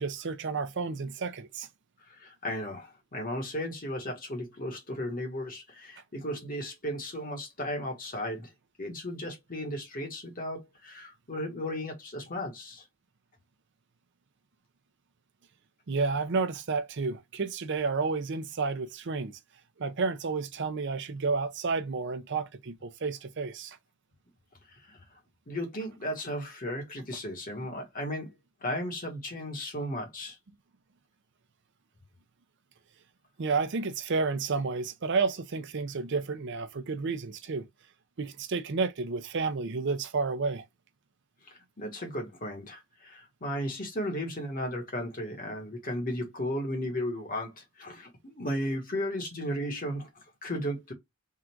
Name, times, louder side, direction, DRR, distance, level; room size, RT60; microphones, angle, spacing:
voice 1, 0.0-1.7 15.9-19.3 19.8-23.8 33.4-37.7 38.2-40.6, right 4 dB, 55° right, 0.6 m, -31 dB
voice 2, 2.1-8.5 8.8-12.8 24.7-25.0 25.5-28.3 28.6-30.4 41.5-50.9, equal, 40° left, 1.4 m, -35 dB
3.7 x 2.5 x 4.4 m
head